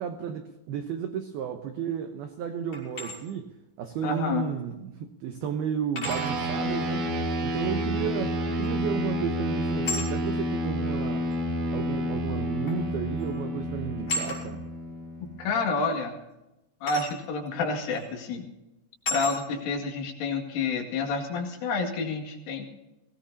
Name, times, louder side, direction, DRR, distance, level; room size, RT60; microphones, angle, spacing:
voice 1, 0.0-3.5 3.8-7.1 7.4-11.3 11.7-14.6, right 8 dB, 85° right, 6 dB, 2.2 m, -33 dB
sound 1, 2.7-3.2 4.7-4.8 6.0-6.4 8.6-8.9 9.8-10.1 11.3-11.4 12.7-12.9 13.2-13.4 14.1-14.4 16.9-17.1 17.9-18.1 19.1-19.4, left 2 dB, 30° left, 6.6 m, -33 dB
voice 2, 4.0-4.5 15.2-16.2 16.8-18.5 19.1-22.6, left 4 dB, 75° left, 1 dB, 4.6 m, -29 dB
sound 2, 6.0-15.8, equal, 50° right, 2.7 m, -30 dB
22.5 x 17.5 x 2.8 m, 0.98 s
omnidirectional pair, 5.8 m